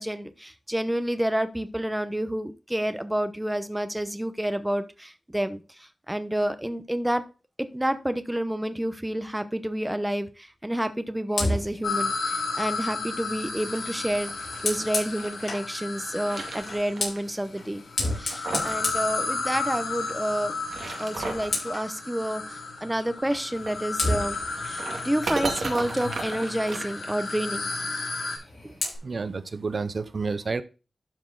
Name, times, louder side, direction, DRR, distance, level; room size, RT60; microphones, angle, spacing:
voice 1, 0.0-7.2 7.6-17.8 18.2-20.6 21.0-24.4 24.6-27.7, right 1 dB, 10° right, 0.9 m, -29 dB
Fire, 11.3-15.7 16.6-19.9 20.2-20.5 20.8-21.9 23.3-23.4 24.0-26.3 28.2-29.0, left 2 dB, 60° left, 5.3 m, -33 dB
sound 1, 11.8-17.1 17.9-28.4, left 4 dB, 80° left, 4.1 m, -33 dB
sound 2, 13.7-15.5 15.9-17.2 17.4-17.5 18.1-18.9 19.1-19.2 20.5-21.6 23.5-27.6, right 3 dB, 80° right, 2.0 m, -36 dB
voice 2, 29.0-30.6, right 4 dB, 55° right, 0.8 m, -30 dB
12.5 x 4.6 x 4.0 m
wide cardioid pair, 95°, 0 cm